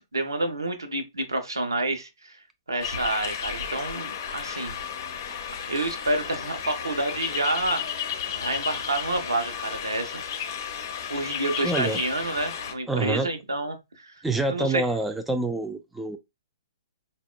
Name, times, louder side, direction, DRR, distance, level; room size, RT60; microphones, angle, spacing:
voice 1, 0.1-2.4 2.7-4.8 5.7-10.2 11.1-14.2 14.5-14.8, right 2 dB, 75° right, 0.7 m, -29 dB
sound 1, 2.8-12.7, left 8 dB, 50° left, 0.6 m, -33 dB
voice 2, 11.6-12.0 12.9-13.3 14.2-16.2, right 2 dB, 5° right, 0.3 m, -26 dB
4.2 x 2.1 x 2.2 m
figure-of-eight pair, 115°, 2 cm